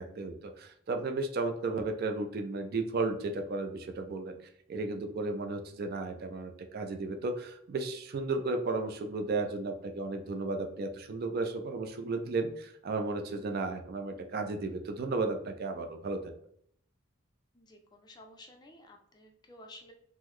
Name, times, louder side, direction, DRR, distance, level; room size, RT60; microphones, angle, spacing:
voice 1, 0.0-4.3 4.7-16.3, right 3 dB, 45° right, 5 dB, 0.3 m, -34 dB
voice 2, 17.5-19.9, left 1 dB, 20° left, 3 dB, 0.4 m, -53 dB
3.7 x 2.0 x 3.0 m, 0.67 s
head